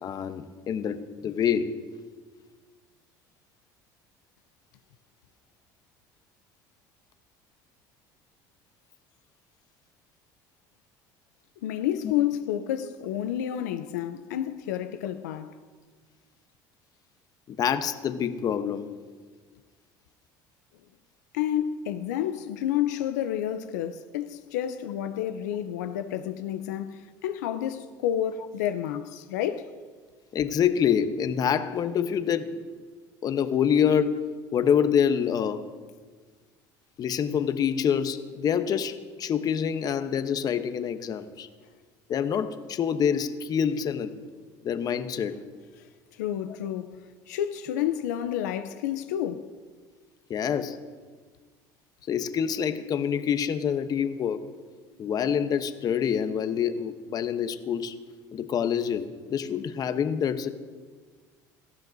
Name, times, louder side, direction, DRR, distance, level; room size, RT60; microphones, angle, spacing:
voice 1, 0.0-1.8 17.5-18.9 30.3-32.6 33.2-34.3 34.5-35.6 37.0-41.5 42.1-44.1 44.6-45.4 50.3-50.8 52.1-54.4 55.0-58.0 58.3-60.5, left 8 dB, 45° left, 0.9 m, -26 dB
voice 2, 11.6-15.6 21.3-29.7 46.2-49.5, left 11 dB, 90° left, 0.6 m, -30 dB
18.0 x 14.0 x 2.7 m
supercardioid pair, 90°, 9 cm